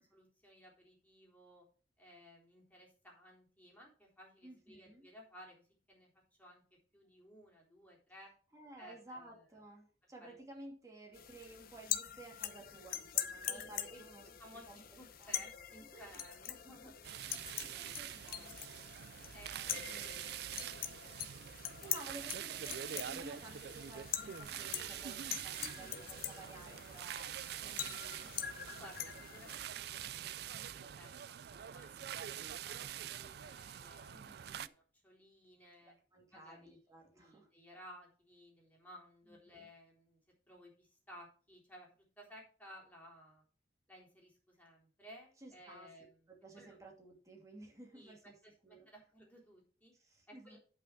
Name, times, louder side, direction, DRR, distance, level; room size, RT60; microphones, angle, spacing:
voice 1, 0.0-1.7 2.0-6.6 6.9-8.3 8.8-9.5 10.2-10.4 13.5-14.0 14.4-18.8 19.3-21.6 25.6-26.0 28.7-36.0 36.3-36.8 37.1-40.2 40.5-43.4 43.9-46.3 46.5-46.8 47.9-49.9 50.3-50.6, equal, 10° left, -3 dB, 3.7 m, -58 dB
voice 2, 4.4-5.1 8.5-14.2 14.7-14.8 15.2-15.4 15.9-16.4 16.8-16.9 17.4-18.6 19.8-20.4 21.6-29.1 34.1-34.7 36.1-37.5 39.3-39.7 45.4-45.9 46.3-48.3 48.6-48.9 50.0-50.6, right 2 dB, 20° right, -1 dB, 2.7 m, -54 dB
sound 1, 11.1-29.6, left 11 dB, 55° left, 0.8 m, -44 dB
sound 2, 17.0-34.7, right 10 dB, 65° right, 0.4 m, -45 dB
9.5 x 5.7 x 5.9 m, 0.40 s
head